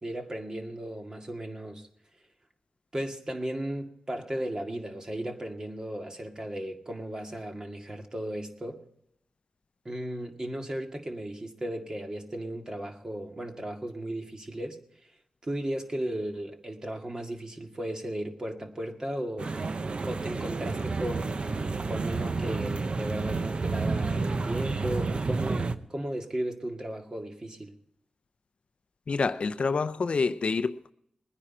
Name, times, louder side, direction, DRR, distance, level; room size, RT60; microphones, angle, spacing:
voice 1, 0.0-1.9 2.9-8.8 9.9-14.8 15.4-19.5 20.0-27.7, right 1 dB, 35° right, 2.0 m, -35 dB
sound 1, 19.4-25.7, right 3 dB, 50° right, 0.7 m, -30 dB
voice 2, 29.1-30.9, left 4 dB, 60° left, 0.5 m, -27 dB
21.0 x 9.9 x 4.3 m
wide cardioid pair, 75°, 2 cm